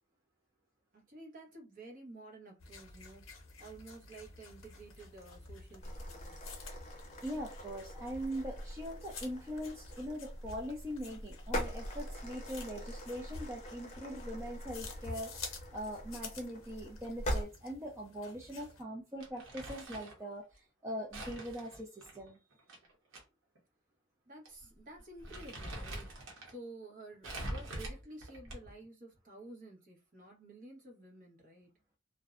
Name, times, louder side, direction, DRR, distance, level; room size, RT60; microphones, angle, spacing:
voice 1, 0.9-6.4 24.3-31.7, right 2 dB, 45° right, 1.0 m, -52 dB
sound 1, 2.6-18.8, left 3 dB, 85° left, 0.7 m, -51 dB
sound 2, 5.8-17.4, equal, 35° left, 0.6 m, -43 dB
voice 2, 7.2-22.4, equal, 15° right, 0.4 m, -42 dB
Crumpling crinkling, 19.2-20.2 21.1-23.2 23.6-23.7 24.5-24.6 25.0-26.5 27.2-28.8, right 1 dB, 80° right, 0.8 m, -44 dB
2.5 x 2.1 x 2.4 m
head